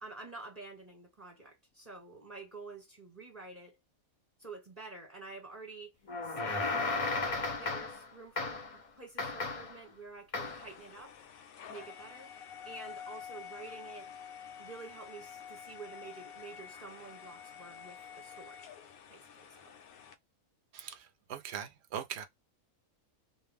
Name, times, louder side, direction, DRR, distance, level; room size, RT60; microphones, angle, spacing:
voice 1, 0.0-3.8 4.4-5.9 6.2-11.1 11.7-12.3 12.6-14.1 14.6-18.7 19.1-19.7, right 3 dB, 30° right, 1.0 m, -49 dB
sound 1, 6.1-8.1 8.4-8.8 9.2-9.8 10.3-10.7, left 3 dB, 50° left, 0.4 m, -34 dB
sound 2, 10.4-20.1, left 8 dB, 75° left, 1.0 m, -49 dB
voice 2, 20.7-22.3, right 8 dB, 65° right, 0.7 m, -41 dB
2.5 x 2.0 x 3.3 m
omnidirectional pair, 1.5 m